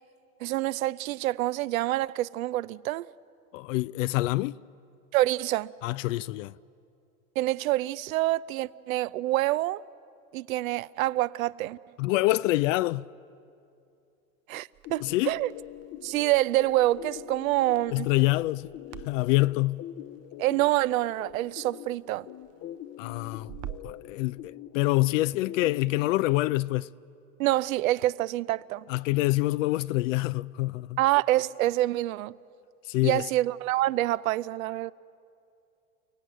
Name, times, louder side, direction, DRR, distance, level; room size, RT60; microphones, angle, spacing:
voice 1, 0.4-3.1 5.1-5.7 7.4-9.8 10.3-11.8 14.5-15.5 16.0-18.1 20.4-22.3 27.4-28.8 31.0-32.3 33.0-34.9, right 16 dB, 70° right, 0.7 m, -26 dB
voice 2, 3.5-4.6 5.8-6.5 12.0-13.1 15.0-15.3 17.9-18.7 19.1-19.8 23.0-23.5 23.8-26.9 28.9-31.0 32.9-33.2, left 19 dB, 65° left, 0.5 m, -26 dB
Crackle, 14.7-24.0, right 12 dB, 35° right, 0.7 m, -49 dB
sound 1, 14.8-26.1, left 12 dB, 35° left, 0.8 m, -44 dB
29.5 x 17.5 x 9.2 m
hypercardioid pair, 95°, 42 cm